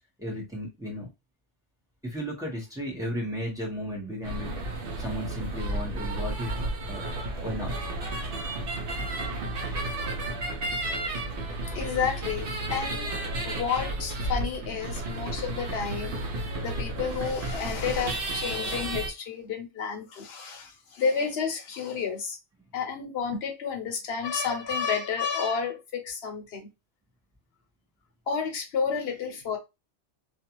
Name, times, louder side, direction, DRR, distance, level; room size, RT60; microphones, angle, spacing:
voice 1, 0.2-1.1 2.0-4.5 5.0-6.5 6.9-7.0 7.4-7.7, equal, 5° right, 0.8 m, -34 dB
sound 1, 4.2-19.1, right 1 dB, 60° right, 0.8 m, -32 dB
voice 2, 11.7-13.1 13.4-16.2 16.6-22.4 22.7-26.7 28.3-29.6, left 6 dB, 65° left, 0.9 m, -31 dB
2.5 x 2.3 x 2.9 m
omnidirectional pair, 1.2 m